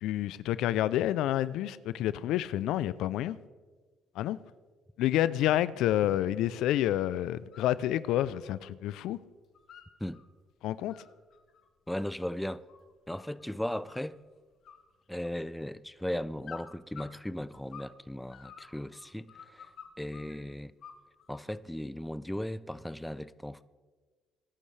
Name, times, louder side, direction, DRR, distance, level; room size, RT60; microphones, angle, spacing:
voice 1, 0.0-3.4 4.2-4.4 5.0-9.2 10.6-10.9, left 13 dB, 75° left, 0.4 m, -29 dB
sound 1, 7.3-7.8 8.1-9.0 9.3-10.2 10.7-13.4 13.9-14.3 14.6-15.6 16.4-18.0 18.3-20.3 20.8-21.5, left 7 dB, 60° left, 1.6 m, -51 dB
voice 2, 11.9-12.6 13.1-14.2 15.1-19.7 20.0-20.7 21.3-23.6, left 1 dB, 5° left, 0.5 m, -37 dB
21.5 x 11.5 x 3.3 m
supercardioid pair, 70°, 0 cm